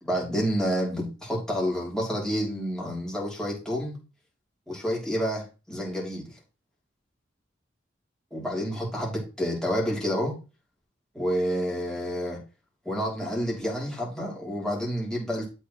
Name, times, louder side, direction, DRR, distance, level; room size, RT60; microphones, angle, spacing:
voice 1, 0.0-3.9 4.7-6.4 8.3-10.3 11.1-12.4 12.8-15.5, equal, 5° left, -4 dB, 3.2 m, -29 dB
12.0 x 4.6 x 3.1 m, 0.32 s
head